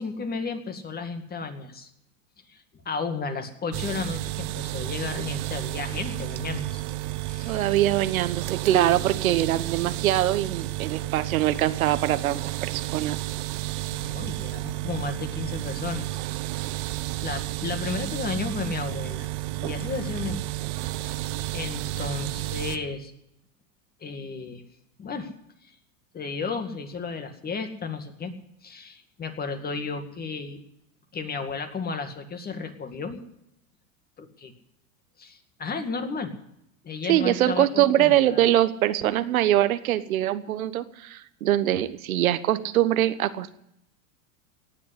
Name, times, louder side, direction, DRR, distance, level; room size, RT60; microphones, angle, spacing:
voice 1, 0.0-1.9 2.5-6.8 7.3-7.8 13.9-16.1 17.2-19.3 19.6-20.4 20.9-21.3 21.5-23.1 24.0-24.6 25.0-25.3 25.6-25.7 26.1-28.4 28.6-30.6 31.1-33.2 34.2-34.5 35.2-36.3 36.8-38.5, left 4 dB, 20° left, 7 dB, 2.1 m, -33 dB
sound 1, 3.7-22.8, right 17 dB, 55° right, 1.1 m, -32 dB
voice 2, 7.4-13.2 37.0-43.5, right 13 dB, 90° right, 12 dB, 1.2 m, -23 dB
18.0 x 7.8 x 9.8 m, 0.78 s
supercardioid pair, 120°, 41 cm